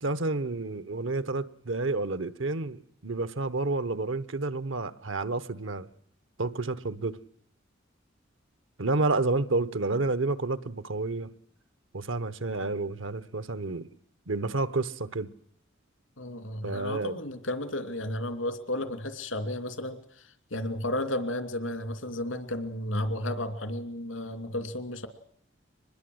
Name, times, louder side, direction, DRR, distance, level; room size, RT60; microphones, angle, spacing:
voice 1, 0.0-5.9 6.4-7.2 8.8-11.3 11.9-13.9 14.3-15.3 16.6-17.2, right 3 dB, 80° right, 1.1 m, -30 dB
voice 2, 16.2-25.1, left 1 dB, 90° left, 2.8 m, -33 dB
24.5 x 20.5 x 7.9 m
head